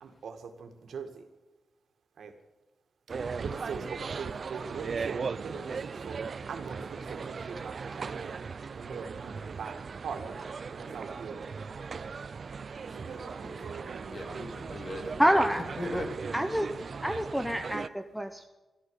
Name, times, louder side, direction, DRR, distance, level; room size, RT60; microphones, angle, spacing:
voice 1, 0.0-1.1 2.2-2.3 3.4-6.2 6.5-8.3 8.7-9.8 10.0-10.3 10.7-11.5 13.1-14.3, right 6 dB, 85° right, 6 dB, 2.0 m, -41 dB
sound 1, 3.1-17.9, right 5 dB, 50° right, 0.6 m, -38 dB
voice 2, 13.4-15.3 15.8-16.2, left 1 dB, 40° left, 5 dB, 2.6 m, -39 dB
voice 3, 15.2-15.6 16.3-16.7 17.0-18.5, equal, ahead, 8 dB, 0.9 m, -27 dB
13.5 x 13.0 x 8.1 m, 1.2 s
wide cardioid pair, 125°, 0 cm